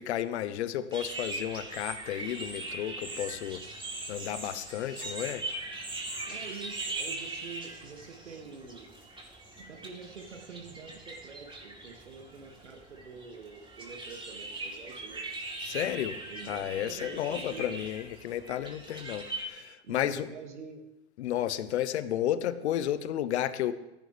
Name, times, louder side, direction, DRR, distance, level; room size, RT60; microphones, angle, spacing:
voice 1, 0.0-3.6 4.1-5.4 15.6-16.2 16.5-20.3 21.2-23.7, left 11 dB, 75° left, 14 dB, 1.0 m, -32 dB
sound 1, 0.9-19.4, right 2 dB, 15° right, 3.5 m, -40 dB
voice 2, 6.3-8.9 9.6-15.2 16.3-17.8 18.9-19.0 19.8-20.8, right 5 dB, 90° right, 3 dB, 2.4 m, -46 dB
16.0 x 16.0 x 3.5 m, 0.98 s
hypercardioid pair, 95°, 34 cm